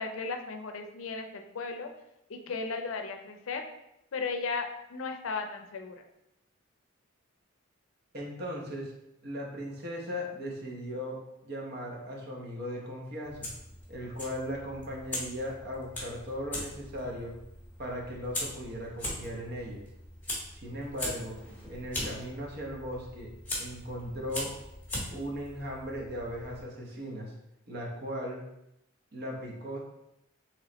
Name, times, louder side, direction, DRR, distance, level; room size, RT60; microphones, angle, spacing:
voice 1, 0.0-1.9 2.3-3.6 4.1-6.0, left 4 dB, 70° left, 5 dB, 0.5 m, -35 dB
voice 2, 8.1-8.9 9.2-13.5 13.9-17.3 17.8-19.8 20.5-23.3 23.6-24.5 25.1-27.3 27.7-28.4 29.1-29.8, equal, 50° right, -2 dB, 0.9 m, -38 dB
Fire, 13.2-26.6, left 1 dB, 10° left, 0.9 m, -40 dB
3.1 x 3.1 x 3.9 m, 0.85 s
head